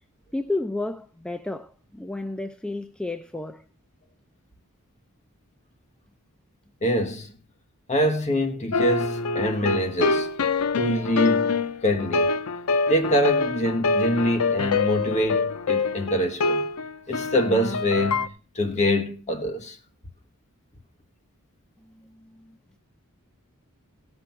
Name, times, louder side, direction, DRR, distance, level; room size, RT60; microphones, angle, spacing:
voice 1, 0.3-3.6 21.8-22.6, left 2 dB, 5° left, 0.5 m, -32 dB
voice 2, 6.8-7.3 7.9-10.3 10.8-12.3 12.9-16.6 17.1-18.2 18.5-19.8, equal, 35° left, 1.5 m, -24 dB
sound 1, 8.7-18.3, left 4 dB, 80° left, 0.7 m, -25 dB
17.0 x 6.1 x 5.9 m
head